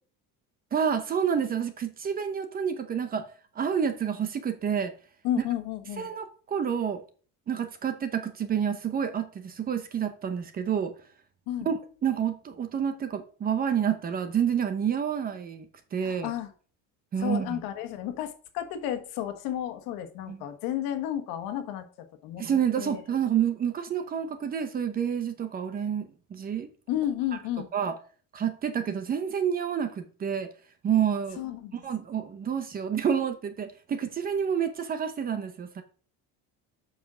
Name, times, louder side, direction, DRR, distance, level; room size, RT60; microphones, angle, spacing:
voice 1, 0.7-3.3 3.6-4.9 6.0-7.0 7.5-10.9 11.6-15.7 15.9-16.3 17.1-17.6 20.3-20.4 22.4-26.7 27.7-27.9 28.3-30.5 30.8-31.4 31.8-35.8, right 8 dB, 25° right, 0.8 m, -28 dB
voice 2, 5.2-6.1 11.5-11.7 16.0-16.5 17.2-22.5 22.8-23.0 26.9-27.7 31.4-31.7, left 11 dB, 70° left, 1.5 m, -32 dB
7.2 x 5.7 x 6.2 m
cardioid pair, 180°, 36 cm